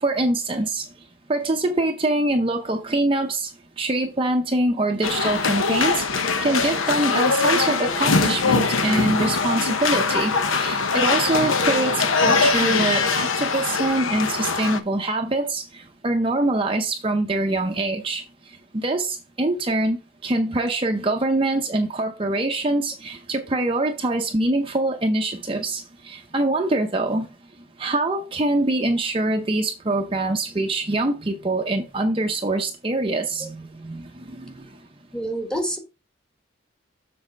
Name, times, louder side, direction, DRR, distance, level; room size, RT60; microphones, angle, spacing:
voice 1, 0.0-0.9 1.3-3.5 3.8-18.2 18.7-20.0 20.2-27.3 27.8-34.7, right 2 dB, 25° right, 0.6 m, -24 dB
sound 1, 5.0-14.8, left 4 dB, 80° left, 0.9 m, -22 dB
voice 2, 35.1-35.8, right 1 dB, 5° left, 1.3 m, -27 dB
7.3 x 4.2 x 5.3 m
head